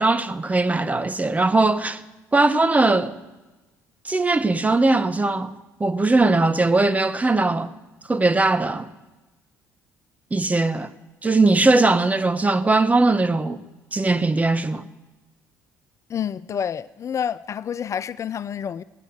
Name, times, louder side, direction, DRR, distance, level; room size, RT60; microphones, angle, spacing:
voice 1, 0.0-2.0 2.3-3.1 4.0-7.7 8.1-8.9 10.3-10.9 11.2-13.6 13.9-14.9, right 2 dB, 20° right, 0.9 m, -20 dB
voice 2, 16.1-18.8, left 8 dB, 40° left, 0.4 m, -28 dB
18.0 x 8.2 x 7.9 m
hypercardioid pair, 60°, 7 cm